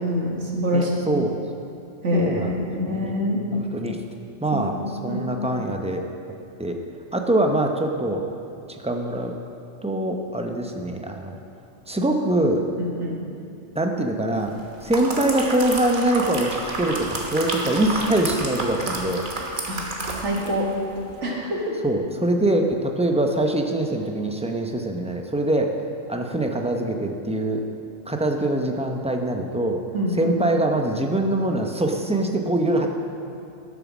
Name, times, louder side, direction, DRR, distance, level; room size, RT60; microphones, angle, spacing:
voice 1, 0.0-0.9 2.0-3.4 4.5-4.6 5.1-5.2 12.8-13.1 19.7-19.9 20.2-20.7 21.2-21.6 29.9-30.1, equal, 65° right, -2 dB, 2.0 m, -25 dB
voice 2, 0.7-1.3 2.1-3.2 3.5-4.0 4.4-4.7 5.0-6.0 6.6-6.8 7.1-8.2 8.8-9.3 9.8-11.4 11.9-12.6 13.7-14.5 14.8-19.2 21.8-25.8 26.1-27.6 28.1-29.8 30.2-32.9, right 1 dB, 10° right, 3 dB, 0.5 m, -23 dB
sound 1, 14.6-20.6 21.0-21.1, right 2 dB, 40° right, 1.4 m, -30 dB
12.5 x 7.2 x 6.1 m, 2.6 s
omnidirectional pair, 1.3 m